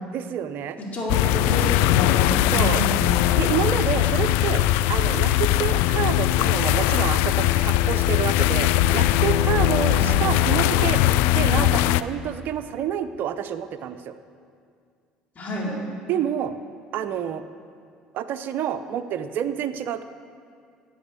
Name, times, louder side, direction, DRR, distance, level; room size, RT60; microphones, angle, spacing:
voice 1, 0.1-0.8 2.5-2.8 3.3-4.6 4.9-11.0 11.3-14.2 16.1-16.5 16.9-17.4 18.1-20.0, right 9 dB, 60° right, 11 dB, 0.6 m, -28 dB
voice 2, 0.9-3.2 9.9-10.1 15.4-15.8, equal, 40° left, -3 dB, 4.0 m, -29 dB
sound 1, 1.1-12.0, left 13 dB, 70° left, 0.3 m, -20 dB
11.5 x 7.6 x 8.4 m, 2.2 s
hypercardioid pair, 65°, 4 cm